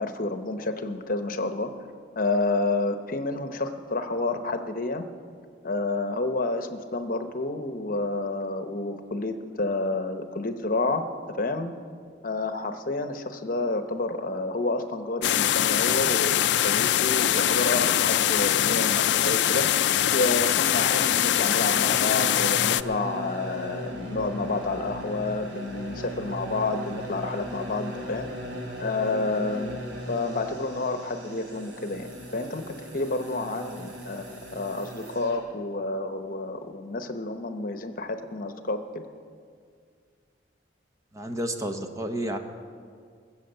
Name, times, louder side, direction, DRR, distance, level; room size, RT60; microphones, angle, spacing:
voice 1, 0.0-1.7 2.2-5.1 5.6-11.0 11.4-11.7 12.2-19.7 20.1-28.3 28.8-32.1 32.3-39.0, left 2 dB, 50° left, 8 dB, 0.9 m, -29 dB
sound 1, 15.2-22.8, left 11 dB, 75° left, 0.4 m, -23 dB
sound 2, 21.6-35.4, equal, 85° right, 2.8 m, -38 dB
voice 2, 41.1-42.4, right 1 dB, 20° right, 6 dB, 0.9 m, -31 dB
20.0 x 7.2 x 8.0 m, 2.1 s
head